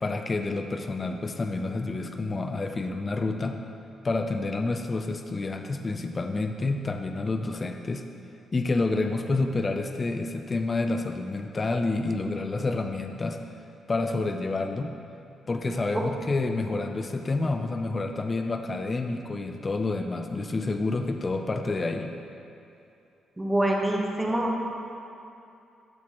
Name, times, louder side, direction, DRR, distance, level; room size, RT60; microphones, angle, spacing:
voice 1, 0.0-3.6 4.0-8.0 8.5-13.4 13.9-14.9 15.5-22.1, left 3 dB, 25° left, 5 dB, 0.4 m, -29 dB
voice 2, 23.4-24.6, right 1 dB, 10° right, 0 dB, 1.0 m, -25 dB
13.0 x 6.2 x 2.9 m, 2.7 s
cardioid pair, 135°, 0 cm